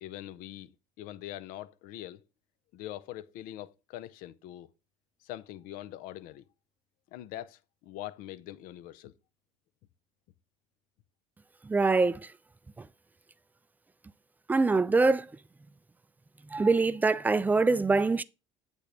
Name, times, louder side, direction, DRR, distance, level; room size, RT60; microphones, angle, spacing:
voice 1, 0.0-2.2 2.7-4.7 5.2-6.4 7.1-9.1, left 13 dB, 65° left, 0.5 m, -43 dB
voice 2, 11.6-12.2 12.8-12.9 14.5-15.3 16.5-18.2, right 3 dB, 10° right, 0.3 m, -24 dB
8.4 x 3.5 x 3.8 m
hypercardioid pair, 80°, 16 cm